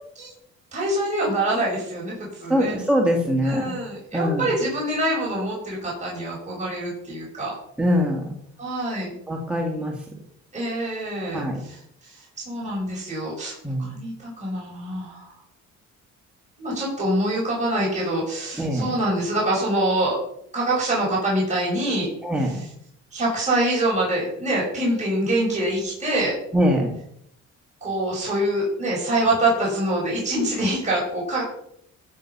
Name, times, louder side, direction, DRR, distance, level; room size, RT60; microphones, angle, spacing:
voice 1, 0.7-2.8 3.4-7.5 8.6-9.1 10.5-15.3 16.6-20.2 20.5-22.1 22.4-22.6 23.1-26.3 27.8-31.4, right 1 dB, 25° right, -5 dB, 6.2 m, -25 dB
voice 2, 2.5-3.8 4.1-4.5 7.8-8.3 9.3-9.9 11.3-11.6 13.6-13.9 18.6-18.9 22.2-22.6 26.5-26.9, equal, 5° right, -1 dB, 2.3 m, -22 dB
15.0 x 6.6 x 5.7 m, 0.71 s
cardioid pair, 90°, 30 cm